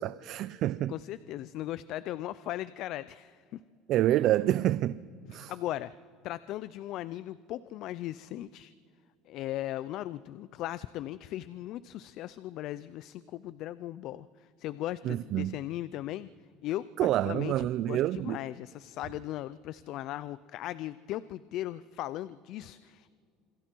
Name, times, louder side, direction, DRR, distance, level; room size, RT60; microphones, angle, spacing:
voice 1, 0.0-0.9 3.9-5.0 5.3-5.5 15.1-15.5 17.0-18.4, right 13 dB, 55° right, 0.4 m, -27 dB
voice 2, 0.9-3.6 5.3-5.9 6.2-8.7 9.3-16.3 16.6-23.1, left 14 dB, 60° left, 0.5 m, -38 dB
27.5 x 27.0 x 4.6 m
supercardioid pair, 115°, 0 cm